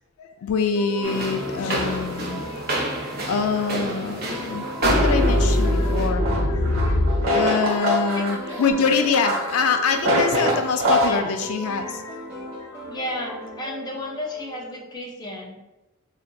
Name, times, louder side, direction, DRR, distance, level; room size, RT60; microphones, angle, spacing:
voice 1, 0.2-2.6 3.2-7.0 7.3-12.2, left 5 dB, 85° left, 6 dB, 0.3 m, -25 dB
sound 1, 0.7-15.0, right 1 dB, 10° right, 1.3 m, -38 dB
sound 2, 1.0-6.1, right 2 dB, 45° right, 0.7 m, -29 dB
sound 3, 4.8-11.1, left 1 dB, 80° right, 1.0 m, -22 dB
voice 2, 8.1-8.6 11.0-11.4 12.9-15.6, left 1 dB, 20° left, -2 dB, 0.4 m, -33 dB
3.9 x 2.5 x 2.2 m, 1.0 s
head